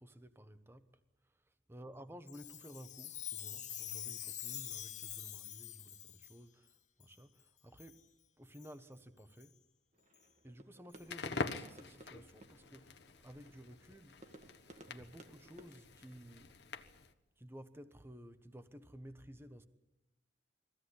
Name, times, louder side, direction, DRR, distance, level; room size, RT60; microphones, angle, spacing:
voice 1, 0.0-8.1 8.4-9.6 10.4-14.2 14.8-16.6 17.4-19.7, equal, 15° right, 1.1 m, -54 dB
Chime, 2.3-6.4 7.0-7.1 7.8-8.0 8.5-8.7 9.4-9.5 10.1-10.2 11.0-11.1, left 11 dB, 40° left, 1.3 m, -45 dB
sound 1, 9.9-16.6, right 1 dB, 40° right, 1.5 m, -60 dB
Crackle, 11.0-17.1, left 4 dB, 65° left, 1.3 m, -46 dB
22.5 x 16.0 x 9.9 m
head